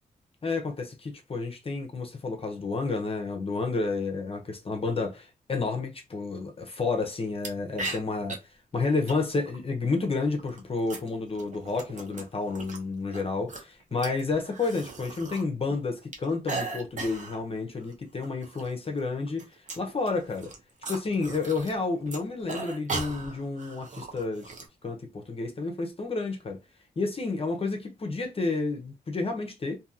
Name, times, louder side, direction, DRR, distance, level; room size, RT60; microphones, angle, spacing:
voice 1, 0.4-20.5 20.9-24.5 24.8-26.6 27.0-29.8, left 3 dB, 40° left, 0.6 m, -30 dB
sound 1, 7.4-7.5 7.8-8.4 9.1-9.6 10.4-12.8 13.1-15.4 15.7-17.4 17.8-17.9 18.2-18.7 19.0-21.8 22.0-24.7, right 3 dB, 55° right, 0.8 m, -38 dB
2.6 x 2.6 x 2.4 m
cardioid pair, 75°, 16 cm